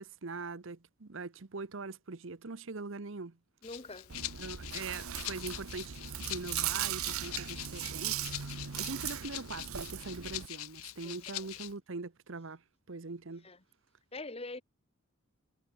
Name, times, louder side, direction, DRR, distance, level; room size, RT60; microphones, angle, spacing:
voice 1, 0.0-3.4 4.4-8.2 8.8-12.6 12.9-13.5, right 3 dB, 60° right, 0.9 m, -42 dB
Rattle (instrument), 3.6-11.7, left 15 dB, 80° left, 0.9 m, -44 dB
voice 2, 3.6-4.2 11.0-11.5 13.4-13.6 14.1-14.6, left 2 dB, 25° left, 1.4 m, -44 dB
Chewing mastication, 4.1-10.5, right 10 dB, 80° right, 1.1 m, -38 dB
head